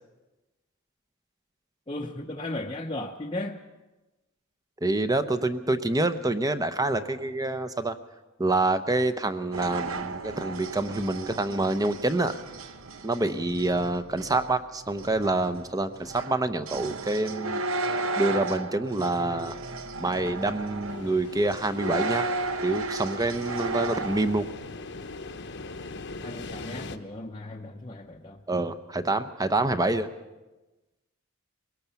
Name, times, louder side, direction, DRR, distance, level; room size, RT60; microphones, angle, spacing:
voice 1, 1.9-3.6 26.2-28.4, left 1 dB, 20° left, -1 dB, 0.8 m, -36 dB
voice 2, 4.8-8.0 8.4-12.3 13.0-17.6 18.2-19.6 20.0-22.3 22.6-24.5 28.5-30.1, right 2 dB, 15° right, 11 dB, 0.8 m, -27 dB
sound 1, 9.5-24.6, right 3 dB, 65° right, 0.9 m, -34 dB
sound 2, 20.9-27.0, left 3 dB, 50° left, 0.9 m, -41 dB
21.5 x 17.5 x 7.0 m, 1.1 s
head